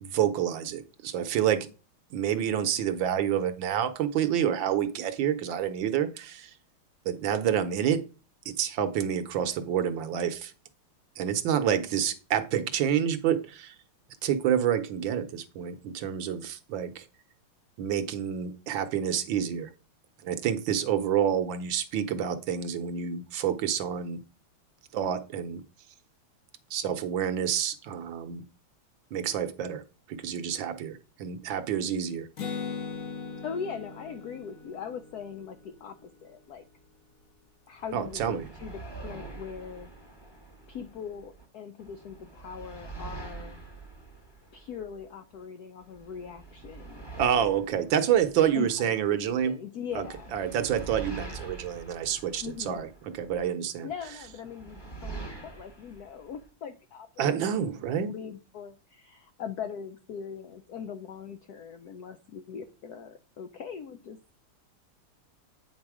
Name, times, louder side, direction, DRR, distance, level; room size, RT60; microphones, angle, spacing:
voice 1, 0.0-1.7 2.1-6.5 7.0-8.0 8.6-10.5 11.2-13.7 14.2-17.0 17.8-19.7 20.2-24.2 24.9-25.6 26.7-28.4 29.1-29.8 30.1-32.3 37.9-38.5 47.2-49.5 49.9-50.1 50.3-52.9 53.1-53.9 57.2-58.1, right 9 dB, 70° right, 10 dB, 1.3 m, -28 dB
Acoustic guitar, 32.4-36.0, left 5 dB, 45° left, 1.4 m, -39 dB
voice 2, 33.4-36.7 37.7-39.9 40.7-43.6 44.5-47.7 48.5-50.3 52.4-52.8 53.8-57.2 57.5-64.4, left 7 dB, 80° left, 8 dB, 0.8 m, -41 dB
sound 1, 37.8-41.4 41.8-45.4 45.8-49.5 49.9-53.5 54.0-56.5, right 4 dB, 15° left, 1.0 m, -45 dB
8.9 x 4.0 x 4.8 m, 0.34 s
omnidirectional pair, 2.4 m